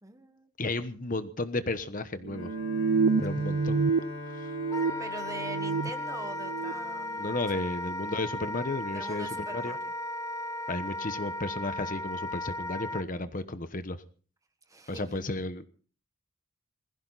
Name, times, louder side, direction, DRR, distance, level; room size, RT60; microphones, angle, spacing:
voice 1, 0.0-0.5 5.0-7.2 7.5-7.6 8.9-9.9 14.7-15.1, right 2 dB, 15° right, 8 dB, 1.6 m, -43 dB
voice 2, 0.6-2.5 3.2-3.8 4.4-4.5 7.2-9.7 10.7-14.0 14.9-15.7, left 2 dB, 40° left, 11 dB, 1.2 m, -33 dB
sound 1, 2.2-4.0 4.3-5.9 6.3-6.7, right 4 dB, 85° right, 0.7 m, -28 dB
Bowed string instrument, 2.3-7.4, equal, 65° left, 5.0 m, -42 dB
Wind instrument woodwind instrument, 4.7-13.1, left 1 dB, 15° left, 0.7 m, -36 dB
21.5 x 15.5 x 4.1 m, 0.40 s
head